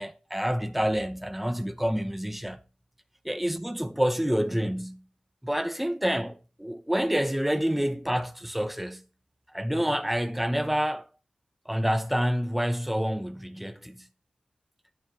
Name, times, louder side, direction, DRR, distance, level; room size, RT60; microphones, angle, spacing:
voice 1, 0.0-2.6 3.3-5.0 5.4-9.0 9.5-11.1 11.7-14.0, equal, 5° right, 0.8 m, -28 dB
10.5 x 9.4 x 2.9 m
cardioid pair, 55°, 3 cm